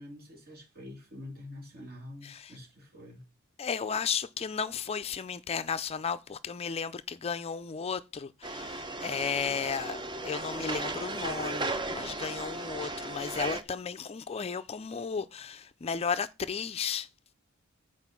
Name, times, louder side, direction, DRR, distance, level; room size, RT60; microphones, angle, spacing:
voice 1, 0.0-3.2, left 1 dB, 45° right, 2.6 m, -46 dB
voice 2, 3.6-17.1, left 6 dB, 30° left, 0.4 m, -34 dB
sound 1, 8.4-13.6, right 2 dB, 20° right, 0.7 m, -36 dB
8.0 x 4.5 x 5.8 m
head